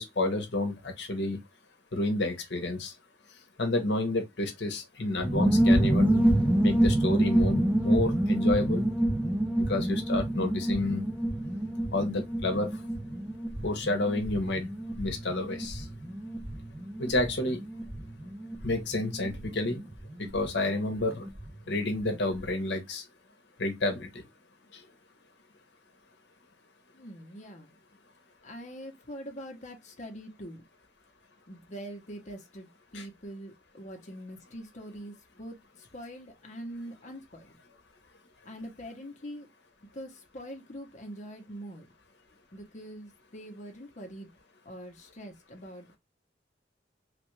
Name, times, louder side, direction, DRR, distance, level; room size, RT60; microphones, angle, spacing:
voice 1, 0.0-1.4 1.9-2.9 3.6-6.2 6.6-8.9 9.6-11.0 11.9-12.7 13.6-14.7 15.0-15.9 17.0-17.6 18.6-19.8 20.2-21.3 21.7-23.0 23.6-24.2 24.7-24.8 32.9-33.0, left 2 dB, 65° left, 1.0 m, -30 dB
sound 1, 5.2-21.5 21.7-21.8 22.0-22.5, right 1 dB, 10° right, 0.7 m, -28 dB
voice 2, 26.9-27.7 28.4-30.6 31.5-37.6 38.4-39.5 39.8-41.9 42.5-44.3 44.6-46.0, equal, 40° left, 0.9 m, -44 dB
3.3 x 2.5 x 3.1 m
head